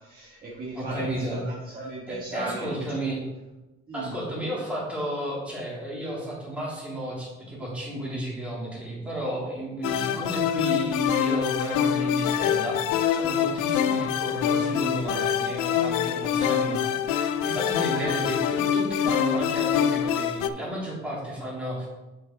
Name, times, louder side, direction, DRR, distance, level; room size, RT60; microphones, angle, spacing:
voice 1, 0.1-1.1 1.4-3.0 3.9-4.1 13.8-14.0 17.9-18.2, right 2 dB, 30° right, -6 dB, 1.5 m, -36 dB
voice 2, 0.7-1.5 2.1-3.2 3.9-12.8 13.1-21.9, right 1 dB, 5° right, -6 dB, 2.8 m, -33 dB
sound 1, 9.8-20.5, left 9 dB, 90° left, 0.5 m, -25 dB
6.7 x 6.5 x 3.8 m, 1.0 s
cardioid pair, 135°, 30 cm